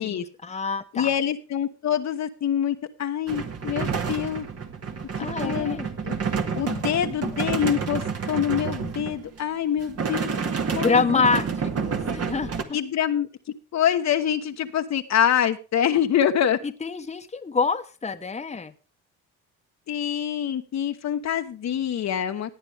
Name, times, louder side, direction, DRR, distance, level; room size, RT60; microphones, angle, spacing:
voice 1, 0.0-1.1 5.2-5.9 10.8-11.5 11.8-12.5 16.8-18.7, left 4 dB, 20° left, 7 dB, 1.1 m, -26 dB
voice 2, 0.9-4.5 5.4-5.8 6.0-6.1 6.5-8.0 8.3-10.3 10.7-11.3 12.7-13.3 13.7-16.6 19.9-22.5, left 9 dB, 55° left, 7 dB, 1.1 m, -25 dB
sound 1, 3.3-9.4 9.8-12.6, right 5 dB, 45° right, 1.8 m, -29 dB
17.0 x 8.9 x 3.4 m, 0.34 s
hypercardioid pair, 55°, 34 cm